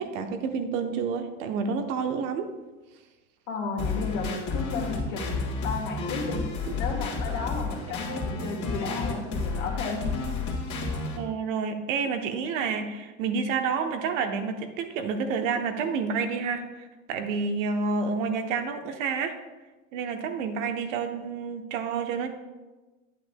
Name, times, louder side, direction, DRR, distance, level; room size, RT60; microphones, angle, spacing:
voice 1, 0.0-2.5 6.6-6.7 11.2-19.4 19.9-22.3, right 5 dB, 75° right, 6 dB, 1.0 m, -29 dB
voice 2, 3.5-6.4 6.8-10.2, left 4 dB, 65° left, 0 dB, 1.9 m, -33 dB
sound 1, 3.8-11.2, left 4 dB, 45° left, 2.2 m, -31 dB
8.7 x 8.6 x 2.2 m, 1.2 s
hypercardioid pair, 80°, 39 cm